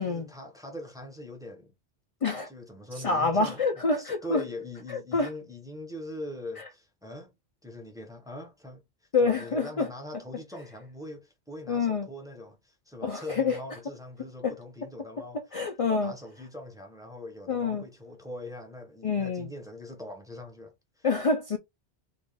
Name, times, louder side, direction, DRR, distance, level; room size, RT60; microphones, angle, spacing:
voice 1, 0.0-1.7 2.5-7.3 7.6-8.8 9.2-15.4 15.8-21.1, left 1 dB, 5° right, 0.8 m, -42 dB
voice 2, 3.0-4.4 4.9-5.3 9.1-9.9 11.7-12.1 13.0-13.6 14.4-14.5 15.5-16.1 17.5-17.8 19.0-19.5 21.0-21.6, left 4 dB, 45° left, 0.5 m, -27 dB
3.8 x 2.4 x 3.4 m
omnidirectional pair, 1.1 m